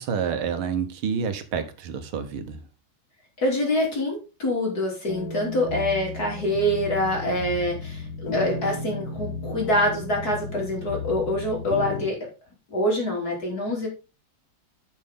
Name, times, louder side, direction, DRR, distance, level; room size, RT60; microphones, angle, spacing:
voice 1, 0.0-2.6, right 6 dB, 80° right, 1.9 m, -28 dB
voice 2, 3.4-12.2 12.7-13.9, left 1 dB, 45° left, 3.8 m, -25 dB
sound 1, 5.1-12.1, left 3 dB, 60° left, 1.8 m, -34 dB
10.5 x 6.5 x 3.7 m
omnidirectional pair, 2.3 m